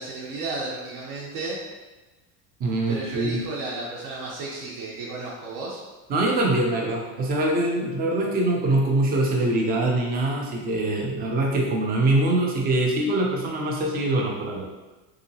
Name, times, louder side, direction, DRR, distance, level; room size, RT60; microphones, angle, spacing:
voice 1, 0.0-1.6 2.9-5.8, right 3 dB, 55° right, -5 dB, 0.7 m, -33 dB
voice 2, 2.6-3.4 6.1-14.6, right 2 dB, 25° right, -1 dB, 0.4 m, -23 dB
3.6 x 2.8 x 2.7 m, 1.2 s
cardioid pair, 155°, 41 cm